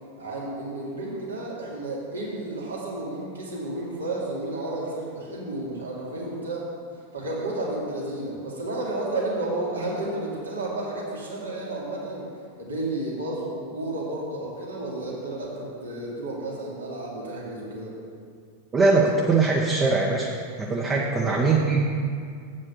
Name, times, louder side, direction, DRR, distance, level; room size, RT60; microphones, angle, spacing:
voice 1, 0.2-6.7 7.1-12.3 12.6-18.0 21.2-21.5, right 2 dB, 75° right, -5 dB, 2.3 m, -32 dB
voice 2, 18.7-20.3 20.6-21.9, right 3 dB, 20° right, -1 dB, 0.9 m, -21 dB
8.4 x 5.4 x 6.7 m, 2.2 s
figure-of-eight pair, 90°, 0 cm